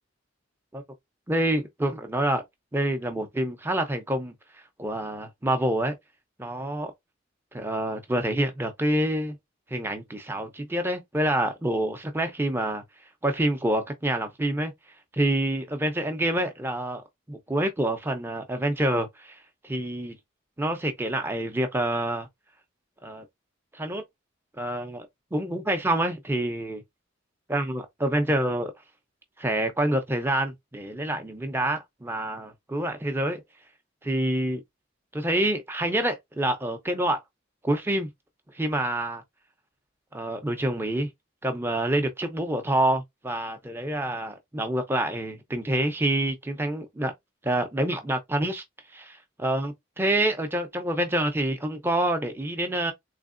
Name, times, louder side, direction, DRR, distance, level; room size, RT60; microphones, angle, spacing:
voice 1, 1.3-2.4 2.7-4.3 4.8-5.9 6.4-6.9 7.5-9.4 9.7-12.8 13.2-14.7 15.1-17.0 17.3-19.4 19.6-20.2 20.6-22.3 23.0-23.3 23.7-24.0 24.6-26.8 27.5-28.7 29.4-33.4 34.0-34.6 35.1-37.2 37.6-38.1 38.5-39.2 40.1-41.1 41.4-47.1 47.4-48.6 48.9-52.9, right 1 dB, 10° right, 0.6 m, -27 dB
3.5 x 3.2 x 2.5 m
head